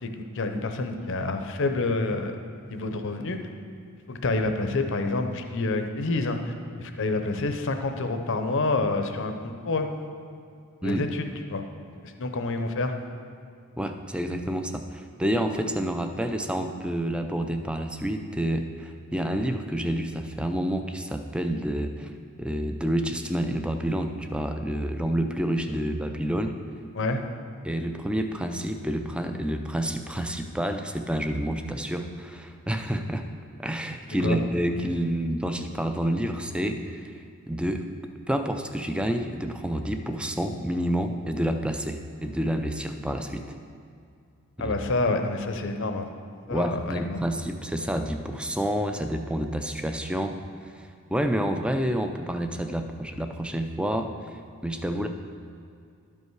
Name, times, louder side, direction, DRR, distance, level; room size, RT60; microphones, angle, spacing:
voice 1, 0.0-2.3 2.7-3.4 4.1-6.5 6.8-9.9 10.8-11.6 12.0-13.0 26.9-27.2 34.2-34.4 44.6-46.1 46.5-47.2, left 3 dB, 60° left, 6 dB, 0.7 m, -28 dB
voice 2, 13.8-22.1 22.4-26.5 27.6-33.3 33.6-37.2 37.5-37.8 38.3-43.4 44.6-44.8 46.5-50.4 50.6-54.1 54.6-55.1, right 1 dB, 5° right, 6 dB, 0.4 m, -29 dB
12.0 x 5.5 x 4.7 m, 2.4 s
head